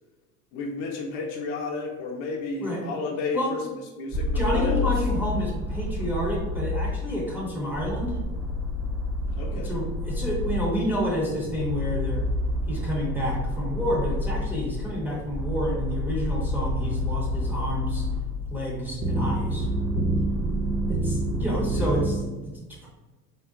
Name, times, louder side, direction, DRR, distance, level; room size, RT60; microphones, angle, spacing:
voice 1, 0.5-3.6 3.9-4.8 9.4-9.7 21.7-21.9, left 3 dB, 50° left, 0 dB, 0.7 m, -32 dB
sound 1, 4.1-22.2, left 1 dB, 30° right, 0.9 m, -28 dB
voice 2, 4.3-8.1 9.5-12.3 12.7-18.0 18.5-19.7 20.9-22.9, equal, 5° right, -5 dB, 0.6 m, -29 dB
3.8 x 2.1 x 2.4 m, 1.2 s
hypercardioid pair, 85°, 47 cm